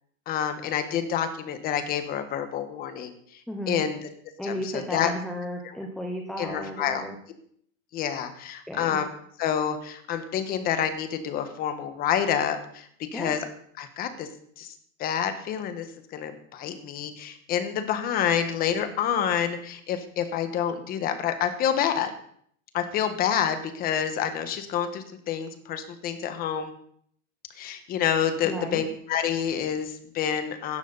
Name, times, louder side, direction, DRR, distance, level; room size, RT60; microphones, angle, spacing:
voice 1, 0.3-3.1 3.7-4.0 4.4-4.6 4.9-5.1 6.4-7.0 7.9-9.1 9.4-12.9 13.1-13.4 13.8-14.3 14.6-14.7 15.0-15.8 16.1-22.1 22.7-26.7 27.6-30.8, left 9 dB, 20° left, 9 dB, 1.4 m, -28 dB
voice 2, 3.5-3.9 4.4-7.2 8.7-9.0 13.1-13.4 28.4-28.8, equal, ahead, 2 dB, 0.7 m, -34 dB
16.5 x 13.0 x 4.1 m, 0.64 s
supercardioid pair, 160°, 42 cm